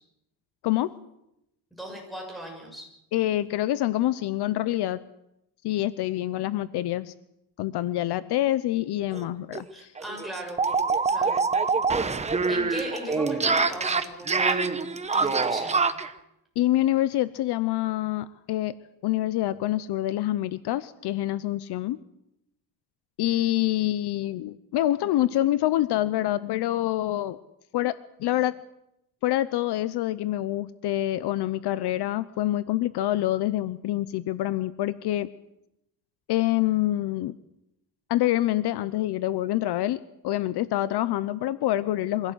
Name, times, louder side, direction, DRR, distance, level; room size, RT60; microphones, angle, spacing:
voice 1, 0.6-0.9 3.1-5.0 5.6-7.1 7.6-9.9 16.6-18.7 19.0-22.0 23.2-27.4 27.7-27.9 28.2-28.5 29.2-35.3 36.3-37.3 38.1-42.3, left 14 dB, 65° left, 15 dB, 0.8 m, -26 dB
voice 2, 1.7-2.9 9.7-10.6 11.1-11.5 12.5-14.8 15.1-15.9, equal, ahead, 0 dB, 6.9 m, -38 dB
sound 1, 9.1-9.2 9.5-9.6 10.0-16.1, right 4 dB, 15° right, 0.9 m, -25 dB
24.0 x 16.5 x 8.0 m, 0.84 s
cardioid pair, 165°, 42 cm